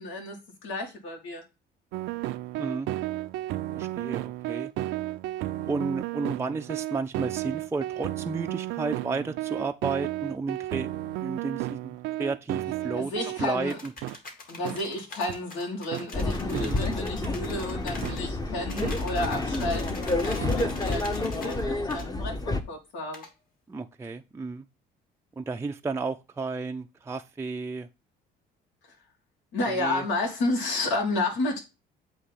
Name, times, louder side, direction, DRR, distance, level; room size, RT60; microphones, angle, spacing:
voice 1, 0.0-1.4 12.9-13.8 14.5-23.2 29.5-31.6, left 2 dB, 80° left, 2.0 m, -31 dB
sound 1, 1.9-13.5 14.0-14.2 14.6-14.8 15.3-15.4 15.9-16.1 16.5-16.7 17.2-17.3 18.0-18.2 18.8-19.0 19.6-19.7 20.4-20.5, right 15 dB, 85° right, 0.5 m, -33 dB
voice 2, 2.6-2.9 3.7-4.7 5.7-13.1 13.4-13.9 16.5-16.8 23.7-24.7 25.4-27.9 29.7-30.0, right 4 dB, 15° right, 0.5 m, -32 dB
sound 2, 13.7-18.2 18.7-21.6 21.9-22.1 23.1-23.3, left 3 dB, 45° left, 2.2 m, -44 dB
sound 3, 16.1-22.6, left 2 dB, 20° left, 0.8 m, -29 dB
8.0 x 2.9 x 5.6 m
cardioid pair, 95°, 19 cm